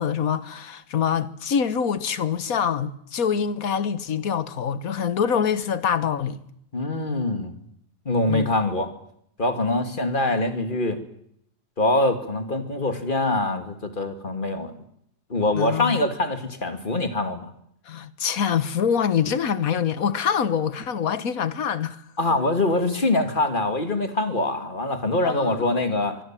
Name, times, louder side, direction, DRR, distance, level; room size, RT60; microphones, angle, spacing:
voice 1, 0.0-6.4 8.3-8.5 15.5-16.0 17.9-22.0 25.2-25.7, left 7 dB, 60° left, 1.6 m, -25 dB
voice 2, 6.7-7.6 8.1-8.9 9.4-11.0 11.8-14.7 15.3-17.5 22.2-26.2, left 2 dB, 30° left, 2.5 m, -24 dB
24.5 x 23.5 x 7.5 m
omnidirectional pair, 1.7 m